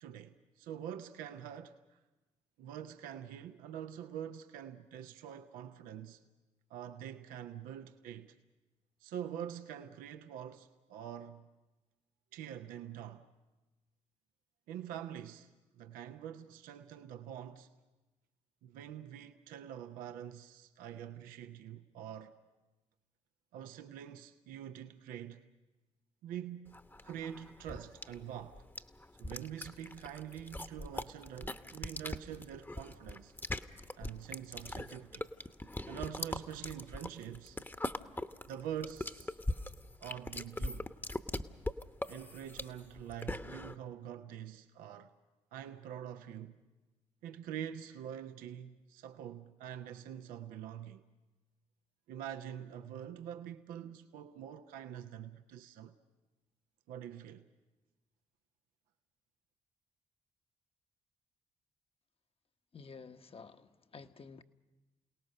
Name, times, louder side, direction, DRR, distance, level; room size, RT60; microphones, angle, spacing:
voice 1, 0.0-2.0 2.6-6.2 6.7-8.4 9.0-11.5 12.3-13.3 14.7-17.7 18.6-22.3 23.5-25.4 26.2-26.8 27.0-28.7 29.2-33.3 34.0-35.3 35.9-37.6 38.4-39.4 40.0-40.9 42.1-45.1 45.5-46.6 47.2-51.0 52.1-55.9 56.9-57.4, right 10 dB, 75° right, 0.7 m, -45 dB
sound 1, 26.7-43.7, left 1 dB, 15° left, 1.0 m, -41 dB
voice 2, 62.7-64.4, left 5 dB, 40° left, 1.1 m, -51 dB
28.5 x 18.0 x 6.6 m
hypercardioid pair, 45°, 15 cm